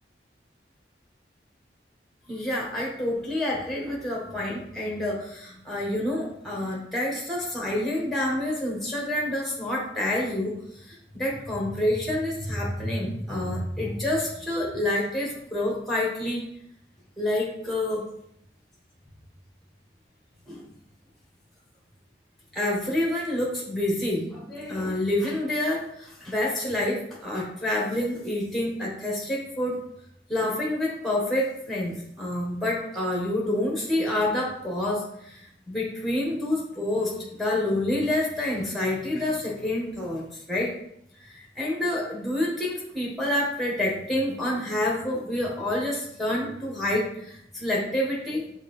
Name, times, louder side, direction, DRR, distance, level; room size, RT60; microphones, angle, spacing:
voice 1, 2.3-10.5 10.8-16.4 17.2-18.0 20.5-20.6 22.5-29.8 30.3-40.2 40.5-40.7 41.2-48.4, left 1 dB, ahead, -3 dB, 1.0 m, -28 dB
6.2 x 2.6 x 3.1 m, 0.74 s
head